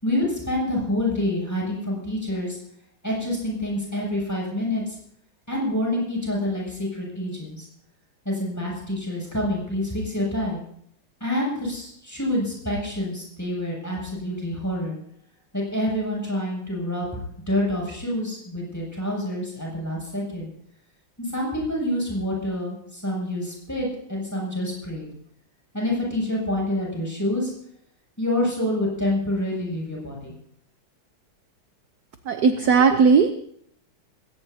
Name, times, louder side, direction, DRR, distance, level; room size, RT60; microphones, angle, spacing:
voice 1, 0.0-2.6 3.0-5.0 5.5-7.7 8.2-10.6 11.2-15.0 15.5-20.5 21.2-25.1 25.7-27.5 28.2-30.3, left 1 dB, 10° left, -3 dB, 7.4 m, -27 dB
voice 2, 32.3-33.3, right 5 dB, 60° right, 7 dB, 1.3 m, -17 dB
21.0 x 18.0 x 2.8 m, 0.68 s
omnidirectional pair, 2.2 m